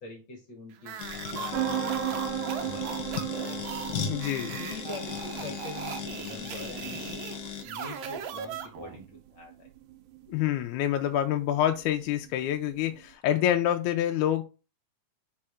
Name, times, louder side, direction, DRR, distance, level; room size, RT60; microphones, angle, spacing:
voice 1, 0.0-3.7 4.4-7.3 7.6-9.7, left 3 dB, 45° left, 1 dB, 1.6 m, -45 dB
sound 1, 0.8-9.1, right 7 dB, 75° right, 1.5 m, -39 dB
sound 2, 1.0-7.6, left 8 dB, 65° left, 1.9 m, -37 dB
sound 3, 1.5-13.0, right 12 dB, 90° right, 2.1 m, -38 dB
voice 2, 4.1-4.6 10.3-14.4, left 11 dB, 80° left, 5 dB, 2.0 m, -27 dB
4.7 x 4.4 x 4.9 m, 0.32 s
omnidirectional pair, 3.5 m